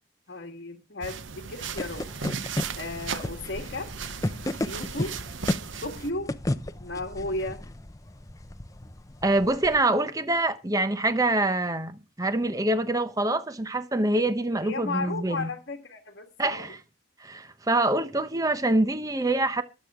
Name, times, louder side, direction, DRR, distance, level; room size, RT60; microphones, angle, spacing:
voice 1, 0.3-2.1 2.8-3.9 4.6-5.2 5.8-6.3 6.8-7.6 14.6-16.6, left 2 dB, 60° left, 1.8 m, -34 dB
sound 1, 1.0-6.1, right 6 dB, 80° right, 0.9 m, -36 dB
sound 2, 1.8-9.8, left 1 dB, 15° left, 0.6 m, -34 dB
voice 2, 9.2-15.5 16.4-16.8 17.2-19.6, right 2 dB, 20° right, 0.8 m, -25 dB
22.5 x 8.3 x 3.7 m
head